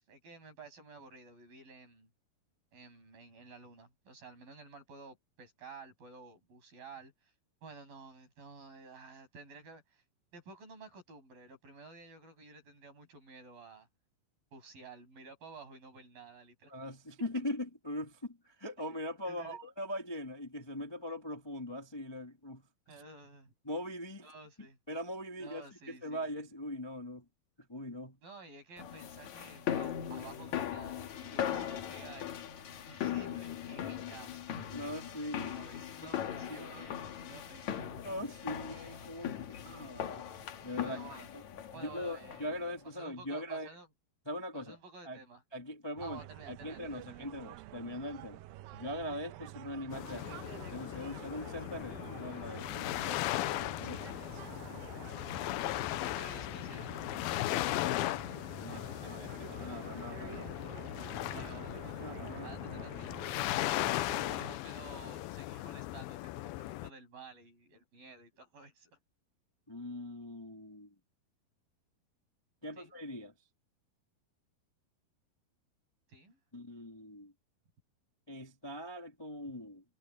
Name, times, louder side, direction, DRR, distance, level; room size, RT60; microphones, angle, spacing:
voice 1, 0.0-2.1 2.7-7.1 7.6-10.0 10.3-13.9 14.5-16.8 19.3-19.6 22.9-23.5 24.2-24.8 25.4-26.4 28.2-32.3 32.9-34.4 35.4-38.0 40.8-41.3 41.7-42.7 43.0-43.9 44.5-45.4 46.0-47.3 53.8-54.5 55.9-57.0 57.5-57.6 58.7-59.6 61.3-62.0 62.4-63.6 64.2-69.0 72.8-72.9 76.1-76.4, right 3 dB, 60° right, 9.5 m, -52 dB
voice 2, 16.7-22.7 23.6-24.3 24.9-27.2 27.6-28.2 34.7-35.5 36.0-36.9 38.0-40.3 40.6-41.0 41.3-41.4 41.7-43.7 44.2-44.8 45.0-45.2 45.5-48.4 48.7-50.4 50.7-53.1 53.6-54.0 57.4-59.2 59.5-60.5 61.3-61.5 62.0-63.1 69.7-70.9 72.6-73.3 76.5-77.3 78.3-79.8, left 1 dB, 10° left, 1.3 m, -41 dB
sound 1, 28.8-42.7, left 10 dB, 55° left, 2.5 m, -39 dB
sound 2, 46.0-64.5, right 15 dB, 80° right, 2.2 m, -49 dB
sound 3, 49.9-66.9, left 17 dB, 80° left, 2.4 m, -37 dB
omnidirectional pair, 4.6 m